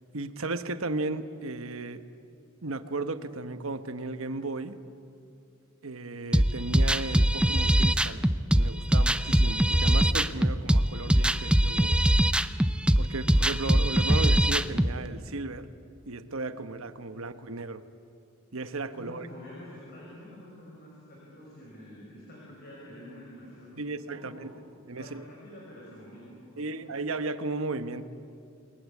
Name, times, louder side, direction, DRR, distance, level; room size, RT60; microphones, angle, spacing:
voice 1, 0.1-2.0 2.6-4.8 5.8-8.3 8.6-12.0 13.0-15.7 16.1-17.8 18.5-19.3 23.8-24.5 24.9-25.2 26.6-28.0, right 3 dB, 75° right, 10 dB, 1.2 m, -35 dB
sound 1, 6.3-14.9, right 1 dB, 5° right, 0.5 m, -22 dB
voice 2, 19.0-23.9 24.1-26.7, left 1 dB, 50° left, -4 dB, 6.1 m, -48 dB
28.5 x 21.5 x 8.4 m, 2.6 s
head